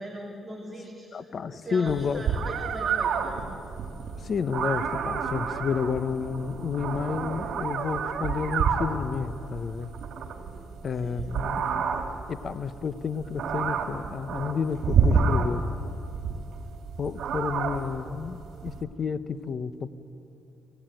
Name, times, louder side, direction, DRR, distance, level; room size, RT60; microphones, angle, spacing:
voice 1, 0.0-3.5 10.4-10.7 11.0-11.2, right 1 dB, 15° right, -1 dB, 3.0 m, -41 dB
voice 2, 1.1-2.2 4.2-9.9 10.8-11.9 12.3-15.8 17.0-19.9, left 6 dB, 50° left, 13 dB, 1.0 m, -31 dB
sound 1, 1.9-18.8, right 6 dB, 70° right, 2.4 m, -29 dB
26.5 x 16.5 x 9.1 m, 2.8 s
cardioid pair, 90°, 0 cm